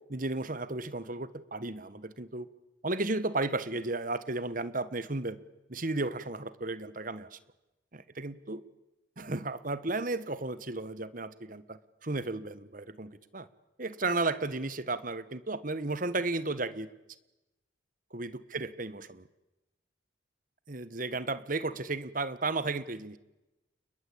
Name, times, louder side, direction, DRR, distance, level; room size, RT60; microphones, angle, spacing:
voice 1, 0.1-2.5 2.8-5.4 5.7-7.4 7.9-8.6 9.2-13.5 13.8-16.9 18.1-19.3 20.7-23.2, right 2 dB, 40° right, 15 dB, 1.4 m, -34 dB
29.5 x 21.5 x 8.6 m, 0.98 s
head